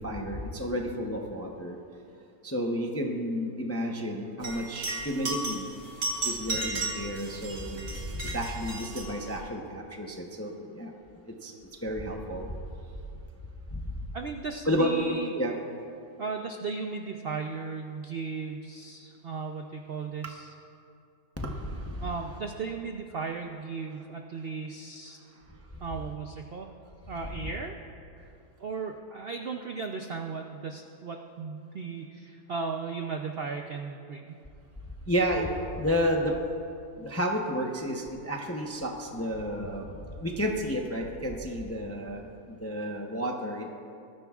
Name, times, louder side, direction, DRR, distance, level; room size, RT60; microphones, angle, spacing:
voice 1, 0.0-1.8 2.4-5.7 6.2-10.9 11.3-11.5 11.8-12.5 13.7-13.8 14.6-15.6 21.4-22.1 35.1-36.4 37.0-39.9 40.2-43.7, equal, 20° left, 1 dB, 0.3 m, -31 dB
sound 1, 4.4-9.4, right 2 dB, 50° right, 2.3 m, -34 dB
voice 2, 14.1-15.3 16.2-20.5 22.0-25.2 25.8-26.7 27.1-27.8 28.1-28.3 28.6-34.4, right 5 dB, 85° right, 3 dB, 0.5 m, -36 dB
19.5 x 13.5 x 2.4 m, 2.6 s
omnidirectional pair, 1.8 m